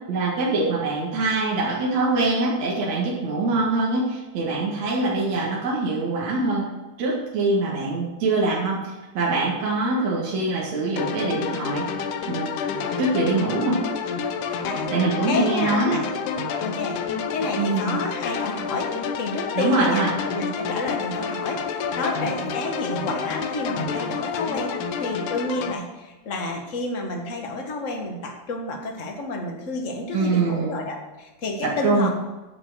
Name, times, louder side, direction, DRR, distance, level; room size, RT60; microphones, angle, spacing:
voice 1, 0.1-6.6 7.0-11.9 12.2-13.8 14.9-16.0 17.6-18.0 19.5-20.1 30.1-30.9 31.6-32.1, right 3 dB, 60° right, -4 dB, 3.0 m, -24 dB
sound 1, 11.0-25.7, left 6 dB, 75° left, 2.3 m, -29 dB
voice 2, 15.2-16.0 16.6-32.1, left 2 dB, 35° left, 2 dB, 1.3 m, -30 dB
9.9 x 7.5 x 6.3 m, 1.1 s
omnidirectional pair, 3.7 m